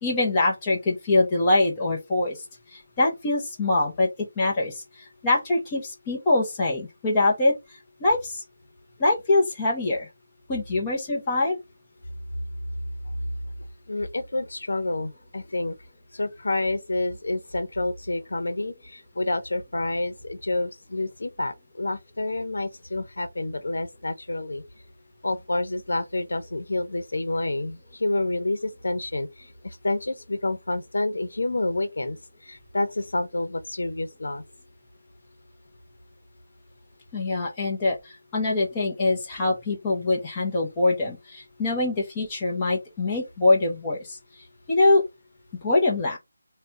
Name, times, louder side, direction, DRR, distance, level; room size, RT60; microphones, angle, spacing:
voice 1, 0.0-2.4 3.0-4.1 4.4-4.8 5.2-7.5 8.0-8.4 9.0-10.1 10.5-11.6 37.1-44.2 44.7-45.0 45.6-46.2, left 2 dB, 15° left, 0.8 m, -23 dB
voice 2, 13.9-15.8 16.1-24.6 25.2-32.2 32.4-34.4, left 2 dB, 75° left, 0.9 m, -28 dB
3.3 x 2.3 x 3.9 m
figure-of-eight pair, 175°, 0 cm